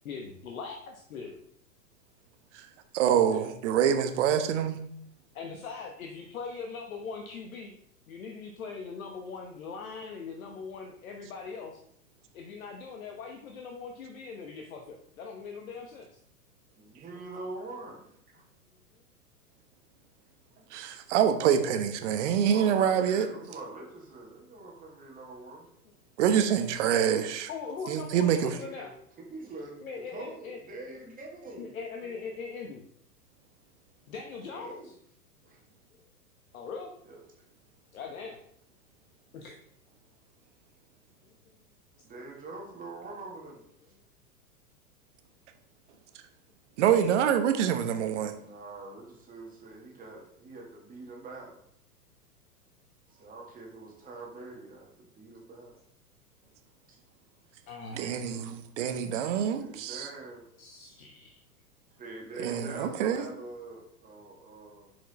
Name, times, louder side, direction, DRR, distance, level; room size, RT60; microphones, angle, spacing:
voice 1, 0.0-1.4 3.3-3.4 5.3-7.7 8.1-11.8 12.3-16.2 18.9-19.0 27.5-28.9 29.8-30.6 31.6-32.8 34.1-34.9 36.5-36.9 37.9-38.4 39.3-39.6 57.7-58.0 60.6-61.3, left 5 dB, 60° left, 2 dB, 1.2 m, -41 dB
voice 2, 2.5-4.8 20.7-23.3 26.2-27.5 27.9-28.5 46.8-48.3 57.9-60.1 62.4-63.3, right 8 dB, 50° right, 8 dB, 1.1 m, -26 dB
voice 3, 16.8-18.4 22.5-25.7 28.6-28.9 29.3-31.7 32.0-32.2 34.5-34.9 35.4-35.6 37.0-37.2 42.0-43.9 48.3-51.6 53.1-55.7 58.8-60.4 62.0-64.9, right 2 dB, 15° right, -2 dB, 1.7 m, -44 dB
7.9 x 4.9 x 4.2 m, 0.68 s
figure-of-eight pair, 100°, 46 cm